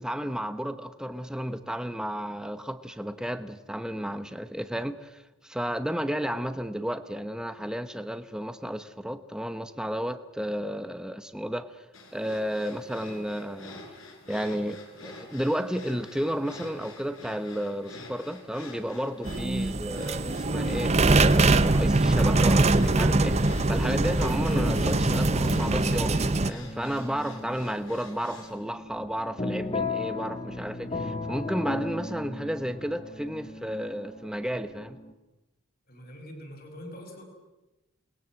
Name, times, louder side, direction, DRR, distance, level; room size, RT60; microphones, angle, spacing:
voice 1, 0.0-11.8 12.1-13.8 14.3-35.0, equal, 5° right, 1.0 m, -32 dB
sound 1, 11.9-28.5, left 2 dB, 70° left, 5.8 m, -47 dB
sound 2, 19.2-26.5, right 2 dB, 30° right, 0.9 m, -23 dB
sound 3, 24.5-35.1, left 2 dB, 25° left, 1.2 m, -36 dB
voice 2, 35.9-37.2, equal, 45° left, 6.1 m, -43 dB
28.5 x 20.5 x 7.7 m
head